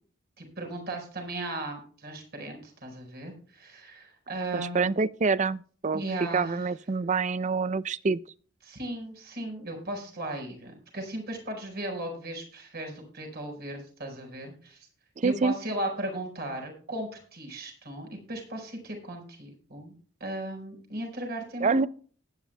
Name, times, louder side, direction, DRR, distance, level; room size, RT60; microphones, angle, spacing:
voice 1, 0.4-4.9 5.9-6.5 8.6-14.8 15.2-19.9 20.2-21.9, right 1 dB, 55° right, 4.7 m, -36 dB
voice 2, 4.5-6.0 6.3-8.2 15.2-15.5 21.6-21.9, right 4 dB, 40° right, 0.5 m, -26 dB
19.5 x 10.0 x 2.2 m
head